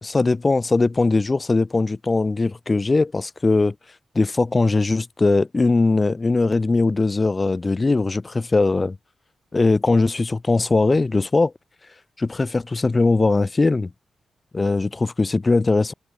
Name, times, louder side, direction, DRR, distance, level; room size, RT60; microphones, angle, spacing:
voice 1, 0.0-3.7 4.2-9.0 9.5-11.5 12.2-13.9 14.5-15.9, left 3 dB, 30° left, 0.5 m, -20 dB
cardioid pair, 85°, 0 cm